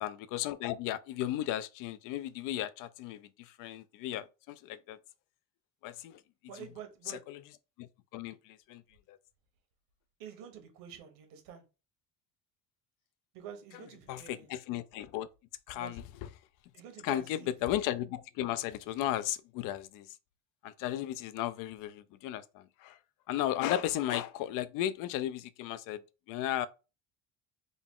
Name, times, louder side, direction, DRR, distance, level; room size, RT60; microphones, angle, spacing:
voice 1, 0.0-5.0 5.8-6.2 7.1-7.4 7.8-8.8 9.1-9.2 14.1-15.3 15.7-16.3 17.0-20.1 20.6-23.0 23.3-26.0 26.3-26.7, left 12 dB, 65° left, 0.5 m, -35 dB
voice 2, 6.5-7.2 10.2-11.6 13.3-14.5 15.7-16.0 16.7-17.6, right 8 dB, 75° right, 1.2 m, -48 dB
3.8 x 2.4 x 3.6 m
cardioid pair, 140°, 34 cm